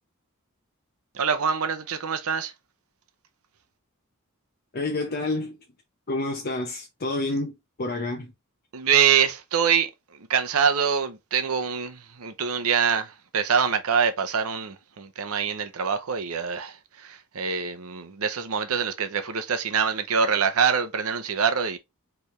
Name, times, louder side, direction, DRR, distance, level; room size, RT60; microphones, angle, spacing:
voice 1, 1.1-2.5 8.7-9.9 10.3-16.7 17.0-21.8, right 7 dB, 80° right, 0.7 m, -24 dB
voice 2, 4.7-5.6 6.1-7.5 7.8-8.3, left 2 dB, 45° left, 0.7 m, -28 dB
4.6 x 3.4 x 3.1 m
head